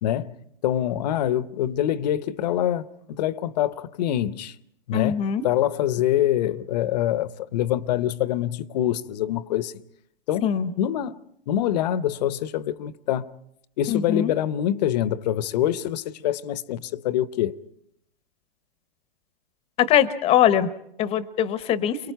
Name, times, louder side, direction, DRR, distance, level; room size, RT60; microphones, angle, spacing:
voice 1, 0.0-4.5 4.9-9.7 10.3-10.5 10.8-11.2 11.5-13.3 13.8-17.6, left 11 dB, 45° left, 0.8 m, -25 dB
voice 2, 4.9-5.4 10.4-10.7 13.9-14.3 19.8-20.7 21.0-22.0, left 10 dB, 20° left, 0.9 m, -21 dB
30.0 x 24.0 x 4.6 m
hypercardioid pair, 135°, 29 cm